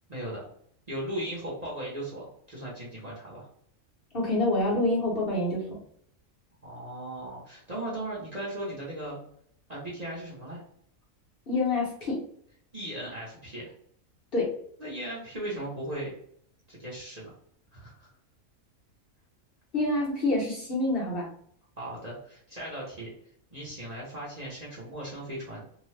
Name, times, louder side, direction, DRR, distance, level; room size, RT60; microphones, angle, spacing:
voice 1, 0.1-0.4 0.9-3.5 6.6-9.2 9.7-10.6 12.7-13.7 14.8-16.1 16.7-17.3 17.7-18.1 21.8-23.1 23.5-25.6, right 1 dB, 35° right, -6 dB, 0.8 m, -37 dB
voice 2, 4.1-5.8 11.5-12.2 14.3-14.5 19.7-21.3, left 2 dB, 45° left, -5 dB, 1.0 m, -27 dB
2.8 x 2.2 x 3.1 m, 0.64 s
omnidirectional pair, 1.5 m